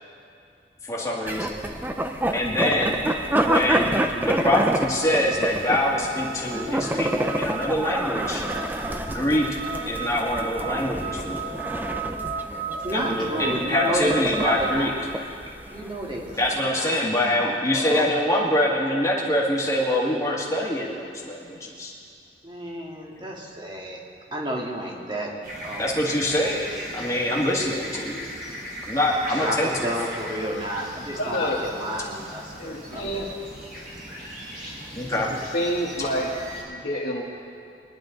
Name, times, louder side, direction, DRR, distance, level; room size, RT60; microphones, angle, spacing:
voice 1, 0.8-1.6 2.3-3.0 3.4-8.4 9.0-9.5 9.8-11.5 12.9-14.9 16.4-21.9 25.8-26.7 26.9-28.2 28.9-29.9 34.9-35.3, left 1 dB, 20° left, -3 dB, 2.0 m, -24 dB
sound 1, 1.3-16.6, right 1 dB, 10° right, 0.6 m, -28 dB
sound 2, 2.3-14.7, right 5 dB, 85° right, 2.2 m, -36 dB
voice 2, 12.8-15.1 15.7-18.1 22.4-24.0 24.3-25.3 25.6-26.0 29.3-33.4, right 1 dB, 25° right, -2 dB, 2.0 m, -31 dB
sound 3, 25.4-36.6, equal, 55° right, 3.8 m, -38 dB
voice 3, 31.1-31.6 32.6-33.3 35.3-36.3 36.7-37.2, equal, 55° left, -6 dB, 1.6 m, -28 dB
22.5 x 11.0 x 3.9 m, 2.5 s
head